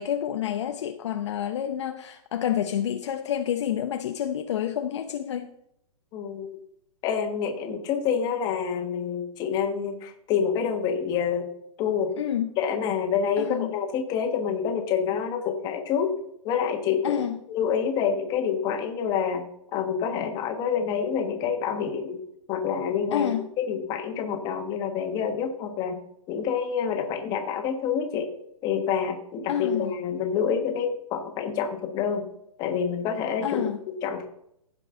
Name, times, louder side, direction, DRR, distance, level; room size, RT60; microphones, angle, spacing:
voice 1, 0.0-5.5 12.2-12.5 13.4-13.7 17.0-17.4 23.1-23.5 29.5-29.9 33.4-33.8, left 10 dB, 50° left, 0.7 m, -28 dB
voice 2, 6.1-6.5 7.0-11.5 11.8-12.1 12.6-16.1 16.4-19.4 19.7-22.2 22.5-26.0 26.3-28.3 28.6-32.3 32.6-34.3, left 7 dB, 20° left, 1.3 m, -27 dB
15.5 x 5.3 x 3.8 m
hypercardioid pair, 150°, 20 cm